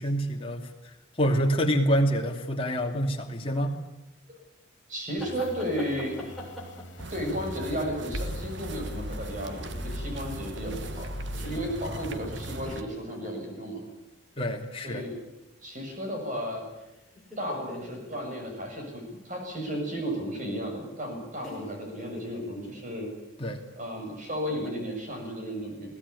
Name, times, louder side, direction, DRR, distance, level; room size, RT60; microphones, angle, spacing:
voice 1, 0.0-3.7 14.4-15.1 23.4-23.6, equal, 25° left, 2 dB, 2.7 m, -27 dB
voice 2, 4.9-6.3 7.1-13.8 14.8-15.1 15.6-16.6 17.4-23.1 23.8-26.0, equal, 40° right, 2 dB, 7.4 m, -34 dB
sound 1, 5.2-7.5 8.1-11.7, equal, 60° left, 3.6 m, -39 dB
sound 2, 5.2-8.3 12.7-13.5 13.9-14.3 15.7-16.2 16.5-18.4 18.8-18.9 20.4-20.5 21.4-22.5 24.5-24.7, left 1 dB, ahead, 7.4 m, -44 dB
sound 3, 7.0-12.8, right 2 dB, 60° right, 1.5 m, -39 dB
22.5 x 17.5 x 9.9 m, 0.94 s
head